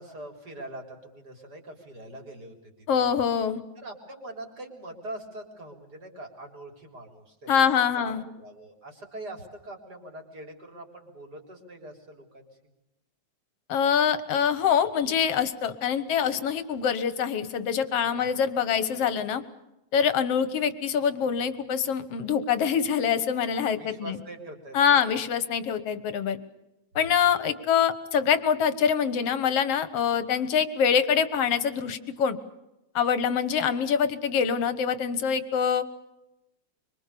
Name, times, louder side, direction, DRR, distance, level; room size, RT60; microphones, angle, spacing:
voice 1, 0.0-2.7 3.0-3.1 3.8-7.7 7.9-12.5 18.0-18.3 23.8-25.1, right 1 dB, 30° right, 3 dB, 4.4 m, -43 dB
voice 2, 2.9-3.6 7.5-8.2 13.7-19.4 19.9-24.2 24.7-26.4 27.0-32.4 32.9-35.8, left 7 dB, 60° left, 13 dB, 2.2 m, -25 dB
25.0 x 25.0 x 6.9 m, 0.92 s
omnidirectional pair, 3.3 m